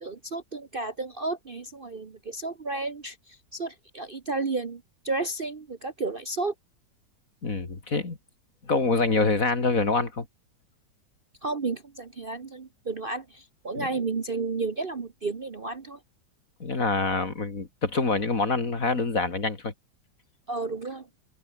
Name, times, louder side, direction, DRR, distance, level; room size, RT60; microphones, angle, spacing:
voice 1, 0.0-6.5 11.4-16.0 20.5-21.1, right 3 dB, 35° right, 1.2 m, -32 dB
voice 2, 7.4-8.2 8.6-10.3 13.7-13.9 16.6-19.7, left 3 dB, 50° left, 3.3 m, -26 dB
omnidirectional pair, 1.9 m